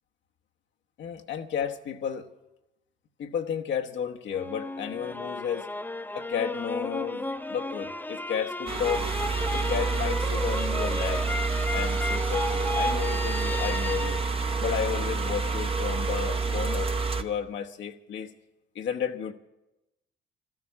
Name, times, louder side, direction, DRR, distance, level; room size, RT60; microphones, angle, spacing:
voice 1, 1.0-2.3 3.2-5.7 6.1-9.0 9.5-11.3 11.7-14.2 14.6-16.9 17.2-18.3 18.7-19.3, left 8 dB, 70° left, 3 dB, 1.1 m, -32 dB
sound 1, 4.3-15.4, left 1 dB, 10° left, 0.6 m, -34 dB
sound 2, 8.7-17.2, right 4 dB, 30° right, 0.9 m, -28 dB
13.0 x 12.5 x 8.4 m, 0.95 s
cardioid pair, 90°, 20 cm